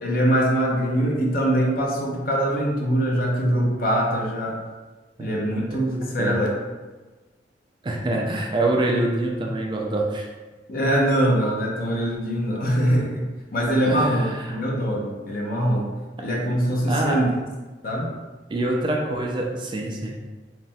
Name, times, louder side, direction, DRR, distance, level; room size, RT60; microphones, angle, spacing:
voice 1, 0.0-4.6 5.2-6.5 10.7-13.3 13.5-15.9 16.2-17.3 17.8-18.1, equal, 55° left, -2 dB, 0.6 m, -23 dB
voice 2, 5.7-6.4 7.8-10.3 13.8-14.6 16.9-17.2 18.5-20.2, right 2 dB, 25° right, 0 dB, 0.3 m, -25 dB
3.1 x 2.1 x 2.6 m, 1.2 s
head